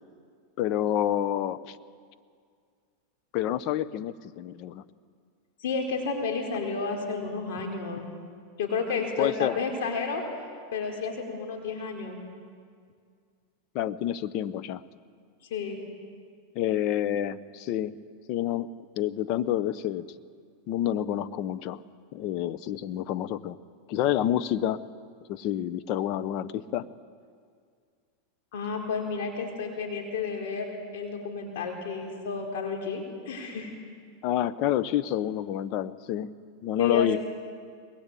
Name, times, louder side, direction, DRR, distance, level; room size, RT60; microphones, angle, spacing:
voice 1, 0.6-1.8 3.3-4.8 9.2-9.6 13.7-14.8 16.5-17.9 18.3-18.7 19.0-20.1 20.7-21.8 22.1-23.6 23.9-24.8 25.3-26.9 34.2-36.3 36.6-37.2, left 11 dB, 50° left, 14 dB, 0.9 m, -28 dB
voice 2, 5.6-8.0 8.6-10.2 10.7-12.2 15.5-15.8 28.5-33.7 36.8-37.2, left 5 dB, 70° left, 1 dB, 4.5 m, -31 dB
22.0 x 20.5 x 8.5 m, 2.1 s
hypercardioid pair, 120°, 0 cm